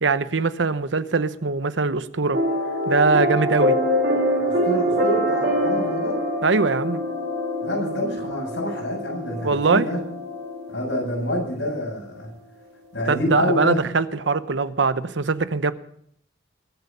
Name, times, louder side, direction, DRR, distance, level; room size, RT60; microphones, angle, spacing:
voice 1, 0.0-2.4 2.9-3.8 6.4-7.0 9.4-9.8 13.1-15.7, right 4 dB, 90° right, 0.8 m, -22 dB
sound 1, 2.3-11.7, equal, 60° right, 3.0 m, -25 dB
voice 2, 4.4-6.2 7.6-10.0 10.7-12.3 12.9-13.8, left 1 dB, 90° left, 7.1 m, -27 dB
22.0 x 8.1 x 5.4 m
head